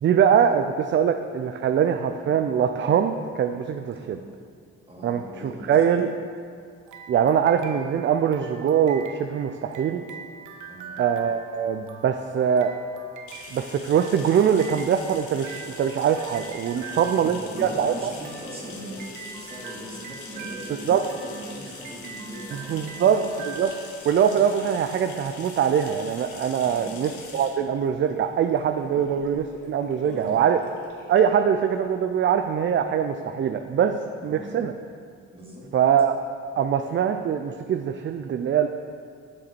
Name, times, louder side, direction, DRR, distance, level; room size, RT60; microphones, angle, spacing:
voice 1, 0.0-4.2 5.0-6.1 7.1-10.1 11.0-12.7 13.5-18.1 20.9-21.1 22.7-23.7 24.0-30.6 31.1-33.9 34.2-34.7 35.7-36.2 36.6-38.7, right 8 dB, 40° right, 7 dB, 0.4 m, -23 dB
voice 2, 4.9-5.5 6.0-6.1 10.6-11.0 16.8-23.3 26.6-27.0 28.9-29.0 30.0-30.4 34.2-34.5 35.3-35.7, right 1 dB, 20° right, -4 dB, 2.2 m, -40 dB
sound 1, 6.9-24.5, right 6 dB, 80° right, 0.6 m, -43 dB
sound 2, 13.3-32.7, left 4 dB, 75° left, 1.2 m, -44 dB
7.4 x 6.5 x 4.4 m, 2.2 s
cardioid pair, 90°, 30 cm